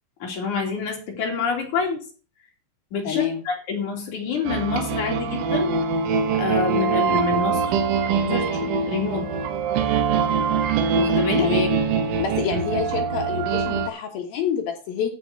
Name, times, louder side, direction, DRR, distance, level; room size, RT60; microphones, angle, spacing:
voice 1, 0.2-2.0 2.9-5.7 6.3-7.8 8.2-9.3 10.9-11.5, left 4 dB, 45° left, 1 dB, 3.4 m, -27 dB
voice 2, 3.0-3.4 11.4-11.8 12.2-15.1, left 8 dB, 65° left, 3 dB, 2.6 m, -27 dB
sound 1, 4.5-13.9, right 5 dB, 75° right, 3.7 m, -23 dB
14.0 x 5.4 x 6.4 m, 0.38 s
omnidirectional pair, 5.5 m